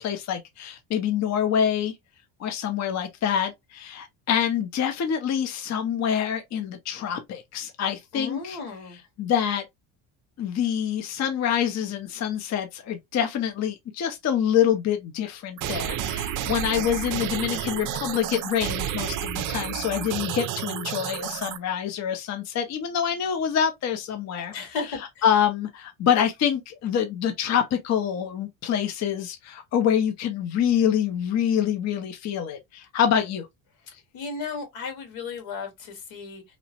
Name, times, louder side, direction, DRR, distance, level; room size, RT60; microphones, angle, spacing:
voice 1, 0.0-2.0 2.4-8.6 9.2-9.6 10.4-24.5 25.0-33.5, left 9 dB, 35° left, 0.5 m, -26 dB
voice 2, 8.1-9.0 24.5-24.9 25.2-25.3 34.1-36.4, left 4 dB, 75° left, 1.5 m, -34 dB
sound 1, 15.6-21.6, right 10 dB, 45° right, 0.4 m, -31 dB
2.9 x 2.0 x 2.7 m
cardioid pair, 100°, 47 cm